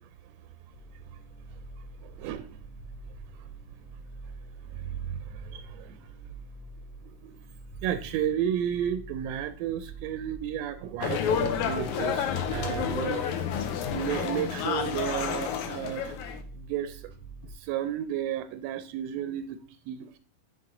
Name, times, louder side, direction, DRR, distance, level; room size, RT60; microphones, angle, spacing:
sound 1, 0.7-17.5, equal, 65° left, 2.8 m, -47 dB
voice 1, 2.0-2.6 5.1-6.1 7.1-7.4 7.8-13.2 13.5-16.1 16.6-17.0 17.6-19.6 19.9-20.1, right 10 dB, 80° right, 1.5 m, -32 dB
sound 2, 11.0-16.4, left 8 dB, 85° left, 2.2 m, -30 dB
11.5 x 3.8 x 3.7 m
omnidirectional pair, 3.4 m